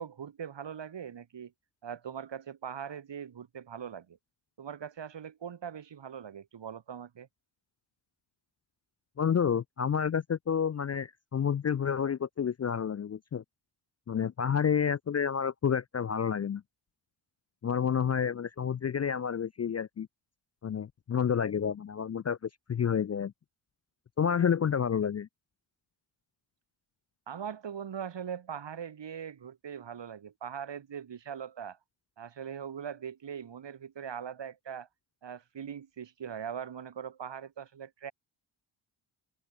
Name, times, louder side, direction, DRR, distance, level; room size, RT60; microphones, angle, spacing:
voice 1, 0.0-1.5 1.8-4.2 4.6-7.3 27.3-31.8 32.2-34.9 35.2-38.1, right 8 dB, 60° right, 1.5 m, -41 dB
voice 2, 9.2-13.4 14.1-16.6 17.6-20.1 20.6-23.3 24.2-25.3, left 7 dB, 35° left, 0.4 m, -29 dB
open air
wide cardioid pair, 85°, 49 cm